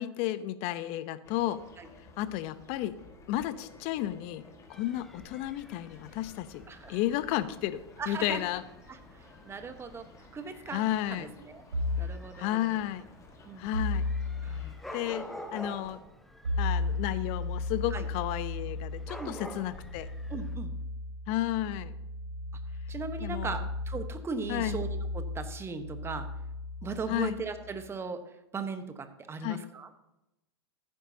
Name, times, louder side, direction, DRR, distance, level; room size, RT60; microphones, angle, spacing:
voice 1, 0.0-1.6 2.2-2.9 3.3-4.4 4.7-6.6 6.9-8.6 10.7-11.3 12.4-13.1 13.6-14.0 14.9-16.0 16.6-20.1 21.3-21.9 23.2-23.6 24.5-24.8 27.1-27.4 29.4-29.6, left 13 dB, 45° left, 14 dB, 0.8 m, -32 dB
sound 1, 1.2-16.0, left 3 dB, 20° left, 1.7 m, -55 dB
Dog / Cat, 4.7-20.6, equal, ahead, 1.0 m, -49 dB
voice 2, 6.7-7.0 8.0-8.5 8.9-9.0 9.4-10.0 10.3-11.6 12.0-12.7 13.4-13.7 14.4-14.7 17.9-18.0 19.2-19.6 20.3-20.8 22.9-26.3 26.8-28.2 28.5-29.9, right 4 dB, 15° right, 8 dB, 1.2 m, -38 dB
sound 2, 11.7-12.2 13.7-14.7 16.4-27.8, left 2 dB, 85° right, 3.4 m, -35 dB
14.5 x 9.4 x 2.8 m, 0.90 s
hypercardioid pair, 100°, 15 cm